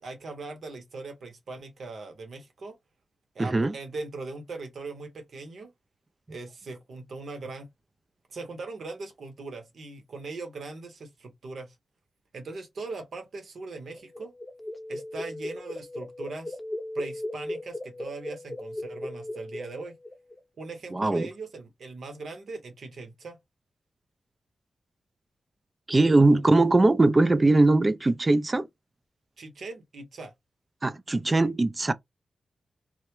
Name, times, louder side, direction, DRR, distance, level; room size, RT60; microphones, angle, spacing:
voice 1, 0.0-2.8 3.3-5.7 6.3-7.7 8.3-11.7 12.3-14.3 14.9-16.6 16.9-19.9 20.6-23.4 26.2-26.4 29.4-30.3, right 3 dB, 75° right, 0.8 m, -40 dB
voice 2, 3.4-3.7 20.9-21.3 25.9-28.7 30.8-31.9, right 2 dB, 30° right, 0.3 m, -21 dB
sound 1, 13.7-20.4, left 1 dB, 15° left, 0.6 m, -37 dB
2.2 x 2.1 x 2.9 m
cardioid pair, 55°, 0 cm